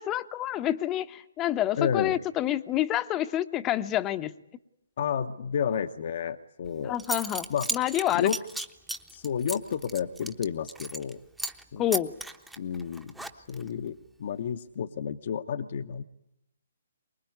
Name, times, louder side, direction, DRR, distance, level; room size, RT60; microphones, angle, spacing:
voice 1, 0.0-4.3 6.8-8.3 11.8-12.1, left 13 dB, 20° left, 12 dB, 0.9 m, -28 dB
voice 2, 1.8-2.2 5.0-6.9 7.5-7.7 8.1-8.4 9.1-11.2 11.7-11.8 12.6-16.0, left 7 dB, 50° left, 8 dB, 0.9 m, -31 dB
Zipper (clothing) / Coin (dropping), 6.6-6.7 7.0-11.1 11.4-11.6 11.9-13.7, right 2 dB, 5° right, 1.0 m, -35 dB
24.0 x 21.0 x 9.5 m, 0.82 s
figure-of-eight pair, 135°, 0 cm